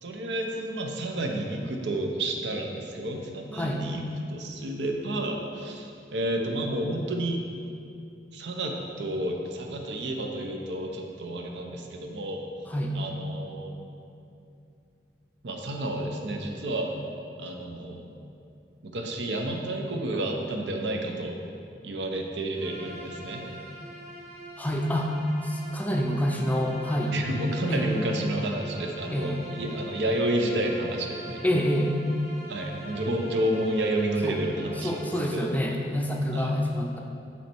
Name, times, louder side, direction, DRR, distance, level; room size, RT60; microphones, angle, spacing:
voice 1, 0.0-4.0 4.3-7.4 8.3-12.4 12.9-13.7 15.4-16.9 17.4-18.0 18.9-21.4 21.8-23.4 27.1-31.4 32.5-35.5 36.3-36.5, right 1 dB, 85° right, 2 dB, 0.7 m, -30 dB
voice 2, 3.5-3.9 12.7-13.0 24.6-25.2 25.4-27.2 27.7-27.9 29.1-29.4 31.4-31.9 34.2-34.4 34.8-37.0, equal, 10° left, 0 dB, 0.4 m, -27 dB
Bowed string instrument, 22.5-35.3, equal, 40° right, 1.5 m, -44 dB
8.2 x 3.2 x 4.4 m, 2.5 s
head